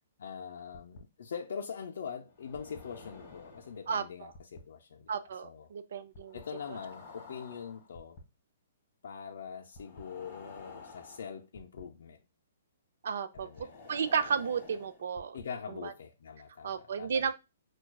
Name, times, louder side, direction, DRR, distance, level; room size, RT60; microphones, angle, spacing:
voice 1, 0.2-5.1 5.4-5.7 6.3-8.2 9.0-12.2 13.3-13.7 15.3-17.3, left 6 dB, 70° left, 0.4 m, -43 dB
sound 1, 0.7-1.0 2.3-3.9 4.3-4.6 6.1-8.2 9.7-11.8 13.3-15.4, left 3 dB, 25° left, 1.5 m, -50 dB
voice 2, 3.9-4.3 5.1-6.4 13.0-13.5 13.9-15.4 15.7-15.9 16.6-17.3, right 6 dB, 65° right, 0.4 m, -33 dB
5.8 x 2.3 x 2.2 m
hypercardioid pair, 160°, 0 cm